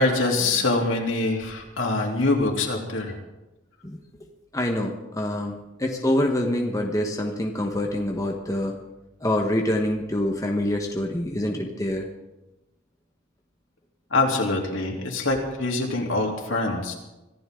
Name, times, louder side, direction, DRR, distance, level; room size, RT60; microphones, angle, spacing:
voice 1, 0.0-3.2 14.1-16.9, left 2 dB, 65° left, 0 dB, 3.4 m, -24 dB
voice 2, 4.5-8.8 9.2-12.1, left 1 dB, 15° left, 1 dB, 1.4 m, -26 dB
25.0 x 15.0 x 3.9 m, 1.0 s
head